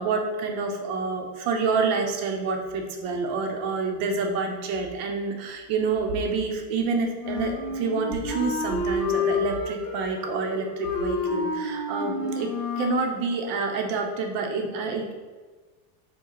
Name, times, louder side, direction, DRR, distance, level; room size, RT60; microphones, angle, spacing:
voice 1, 0.0-12.5 12.8-15.1, right 4 dB, 50° right, 3 dB, 0.8 m, -28 dB
Wind instrument woodwind instrument, 7.2-13.0, left 3 dB, 30° left, 0.8 m, -29 dB
4.8 x 2.3 x 4.6 m, 1.4 s
supercardioid pair, 160°, 46 cm